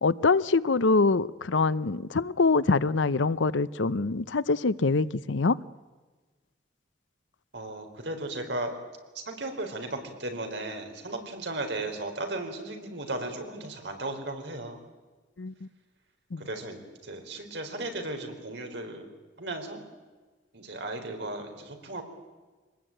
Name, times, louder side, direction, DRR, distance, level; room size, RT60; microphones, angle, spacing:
voice 1, 0.0-5.6 15.4-15.5 16.3-16.5, left 3 dB, 90° left, 17 dB, 0.7 m, -24 dB
voice 2, 7.5-8.7 9.1-14.8 16.4-19.1 19.4-19.8 20.5-22.0, right 2 dB, 70° right, 4 dB, 4.3 m, -35 dB
25.5 x 20.0 x 9.1 m, 1.3 s
head